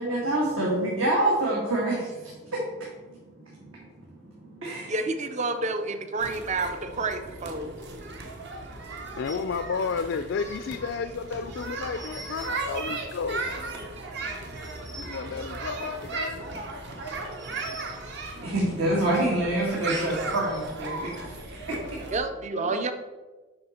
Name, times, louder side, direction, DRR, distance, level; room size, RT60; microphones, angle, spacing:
voice 1, 0.0-2.9 3.5-3.6 4.4-4.9 18.3-22.0, right 1 dB, 75° right, -5 dB, 1.8 m, -27 dB
voice 2, 4.9-8.1 22.1-22.9, right 3 dB, 35° right, 8 dB, 0.5 m, -29 dB
sound 1, 6.2-22.2, right 3 dB, 55° right, 1.1 m, -36 dB
voice 3, 9.2-13.4 15.0-16.4 22.6-22.9, left 5 dB, 60° left, 9 dB, 0.3 m, -32 dB
7.9 x 5.5 x 4.3 m, 1.2 s
head